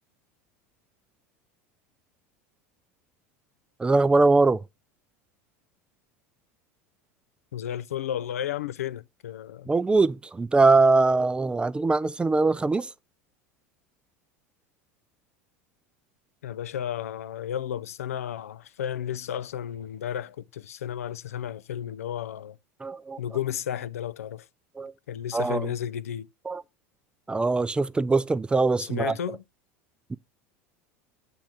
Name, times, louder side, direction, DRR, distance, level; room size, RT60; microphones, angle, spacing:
voice 1, 3.8-4.6 9.7-12.9 22.8-23.2 24.8-24.9 25.3-25.7 26.5-26.6 27.3-29.1 30.1-30.2, right 3 dB, 15° right, 0.3 m, -22 dB
voice 2, 7.5-9.7 16.4-22.6 23.2-24.5 25.1-26.3 28.8-29.4, left 10 dB, 90° left, 0.3 m, -33 dB
7.4 x 3.7 x 5.9 m
hypercardioid pair, 90°, 8 cm